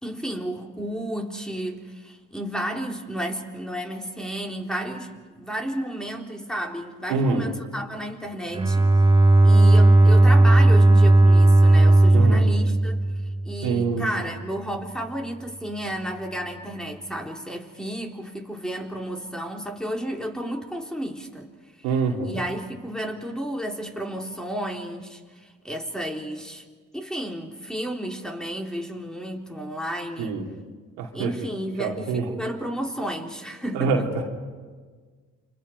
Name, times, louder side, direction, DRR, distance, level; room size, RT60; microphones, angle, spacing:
voice 1, 0.0-8.9 9.4-13.0 13.4-21.5 22.2-26.6 26.9-30.3 31.1-34.1, right 1 dB, ahead, 1 dB, 3.8 m, -32 dB
voice 2, 7.1-7.5 12.1-12.4 13.6-14.1 21.8-22.3 30.2-30.5 31.0-31.3 31.8-32.3 33.7-34.2, right 4 dB, 85° right, 0 dB, 2.8 m, -25 dB
Bowed string instrument, 8.5-13.8, right 2 dB, 15° right, 2.6 m, -15 dB
29.5 x 25.0 x 5.3 m, 1.5 s
hypercardioid pair, 50°, 36 cm